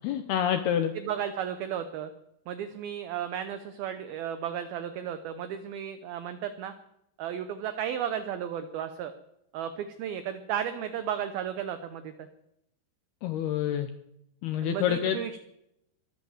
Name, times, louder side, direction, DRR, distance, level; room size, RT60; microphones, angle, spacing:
voice 1, 0.0-0.9 13.2-13.9 14.4-15.2, left 9 dB, 75° left, 8 dB, 2.5 m, -27 dB
voice 2, 1.0-2.1 2.5-6.7 7.2-9.1 9.5-12.1 14.6-15.4, right 9 dB, 80° right, 9 dB, 2.1 m, -34 dB
23.0 x 8.8 x 7.2 m, 0.81 s
omnidirectional pair, 5.4 m